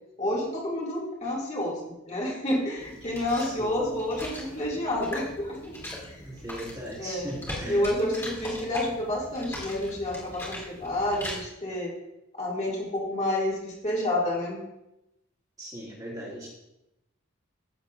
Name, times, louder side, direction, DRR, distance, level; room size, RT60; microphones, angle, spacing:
voice 1, 0.2-1.8 2.1-5.7 6.1-6.2 7.0-7.4 7.6-11.9 12.4-14.6, left 1 dB, 30° left, -4 dB, 2.3 m, -29 dB
sound 1, 2.8-11.4, left 1 dB, 10° left, 2.4 m, -40 dB
voice 2, 3.3-3.8 6.2-7.9 15.6-16.5, equal, 15° right, -6 dB, 2.3 m, -38 dB
14.5 x 7.1 x 2.6 m, 0.89 s
head